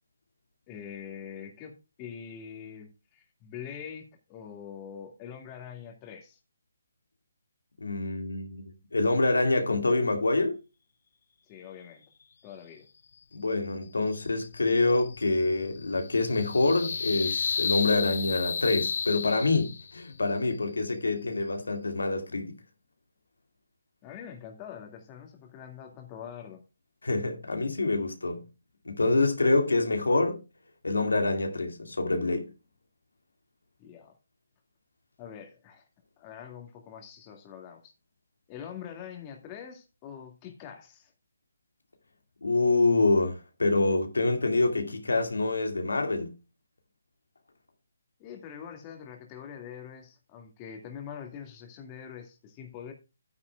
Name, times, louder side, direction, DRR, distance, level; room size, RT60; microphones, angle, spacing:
voice 1, 0.7-6.4 11.5-12.0 12.4-12.8 24.0-26.6 33.8-34.1 35.2-35.8 36.2-37.9 38.5-41.1 48.2-52.9, left 8 dB, 25° left, 2.1 m, -44 dB
voice 2, 7.8-8.6 8.9-10.6 13.3-22.6 27.0-28.5 28.9-30.4 30.8-32.5 42.4-46.3, left 2 dB, 90° left, 2.2 m, -26 dB
sound 1, 14.1-20.1, left 6 dB, 60° left, 0.6 m, -33 dB
11.0 x 9.6 x 2.3 m
hypercardioid pair, 150°, 0 cm